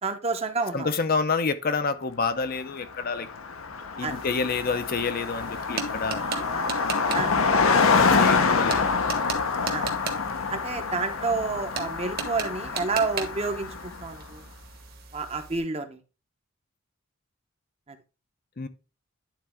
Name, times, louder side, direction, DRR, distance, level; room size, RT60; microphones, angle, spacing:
voice 1, 0.0-0.9 4.0-4.1 6.1-6.8 7.1-7.3 8.1-8.2 9.7-9.9 10.5-14.4 15.1-16.0, right 3 dB, 30° right, 0.8 m, -30 dB
voice 2, 0.7-3.3 4.0-6.2 7.9-8.9 18.6-18.7, left 4 dB, 45° left, 0.6 m, -28 dB
Car passing by, 2.7-2.8 3.0-14.0, left 4 dB, 80° left, 0.8 m, -26 dB
sound 1, 4.1-15.6, right 4 dB, 45° right, 1.4 m, -38 dB
10.5 x 4.0 x 3.5 m
head